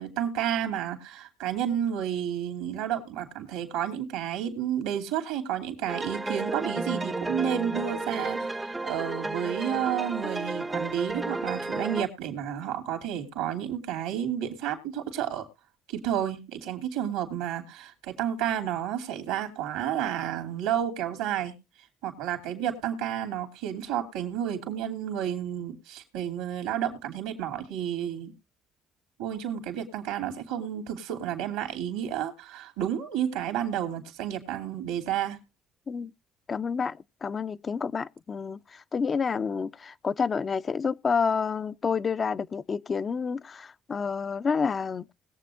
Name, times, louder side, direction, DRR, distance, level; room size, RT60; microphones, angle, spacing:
voice 1, 0.0-8.5 8.8-15.4 15.9-21.5 22.0-28.3 29.2-35.4, right 10 dB, 85° right, 2.7 m, -31 dB
sound 1, 5.9-12.1, right 2 dB, 15° right, 0.7 m, -32 dB
voice 2, 36.5-45.1, left 5 dB, 45° left, 0.6 m, -29 dB
20.5 x 7.6 x 2.5 m
hypercardioid pair, 55°, 0 cm